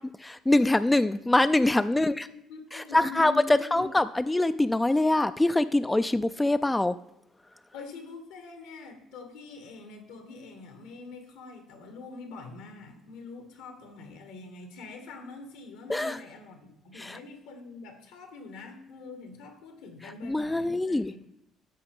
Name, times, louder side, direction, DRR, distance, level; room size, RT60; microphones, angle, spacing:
voice 1, 0.2-2.1 2.7-3.3 3.7-6.9 15.9-16.2 17.0-17.2 20.2-21.1, left 2 dB, 15° left, 12 dB, 0.3 m, -24 dB
voice 2, 1.9-3.8 7.7-21.3, left 4 dB, 80° left, 5 dB, 1.4 m, -45 dB
13.0 x 4.6 x 3.6 m, 0.78 s
hypercardioid pair, 55°, 0 cm